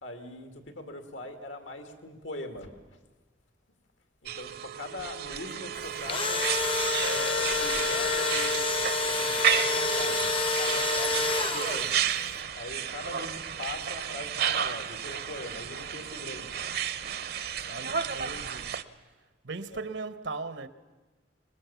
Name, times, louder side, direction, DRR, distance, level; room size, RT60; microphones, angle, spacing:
voice 1, 0.0-3.0 4.2-6.4 7.0-8.6 9.0-10.3 10.6-12.0 12.6-16.6 17.7-18.0 19.7-19.8, left 1 dB, 90° left, 2.3 m, -41 dB
sound 1, 4.3-18.8, right 8 dB, 55° right, 0.7 m, -32 dB
Engine / Drill, 5.8-12.1, left 4 dB, 30° left, 0.6 m, -28 dB
voice 2, 17.7-18.8 19.4-20.7, right 3 dB, 75° right, 1.0 m, -38 dB
23.5 x 20.5 x 7.0 m
head